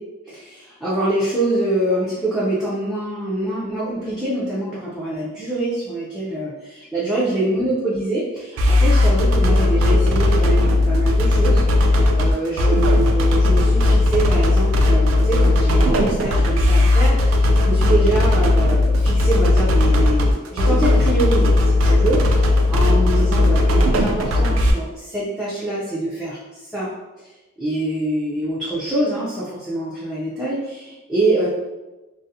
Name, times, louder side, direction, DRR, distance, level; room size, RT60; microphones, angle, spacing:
voice 1, 0.3-22.3 22.7-26.9 27.6-31.5, right 1 dB, ahead, -10 dB, 0.4 m, -25 dB
sound 1, 8.6-24.7, left 2 dB, 70° right, 0.3 m, -16 dB
2.4 x 2.0 x 2.7 m, 1.1 s
head